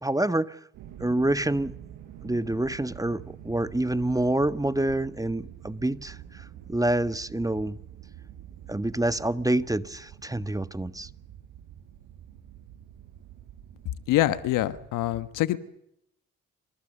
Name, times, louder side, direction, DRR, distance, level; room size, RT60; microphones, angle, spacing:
voice 1, 0.0-0.6 1.0-1.7 2.2-6.4 6.7-7.8 8.7-11.1, right 1 dB, 10° right, 1.5 m, -27 dB
sound 1, 0.7-14.9, right 11 dB, 80° right, 4.7 m, -46 dB
voice 2, 14.1-15.6, left 15 dB, 75° left, 1.4 m, -25 dB
28.5 x 27.0 x 6.8 m
hypercardioid pair, 45°, 32 cm